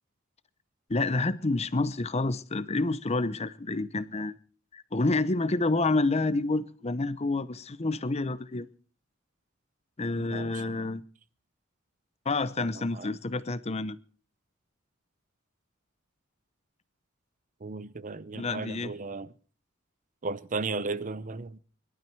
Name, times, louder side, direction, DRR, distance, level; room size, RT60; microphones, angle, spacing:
voice 1, 0.9-4.3 4.7-8.7 10.0-11.0 12.3-14.0 18.3-18.9, left 2 dB, 30° left, 0.7 m, -28 dB
voice 2, 10.2-10.5 12.6-13.1 17.6-19.3 20.2-21.6, right 3 dB, 40° right, 0.7 m, -35 dB
22.0 x 12.0 x 4.6 m
head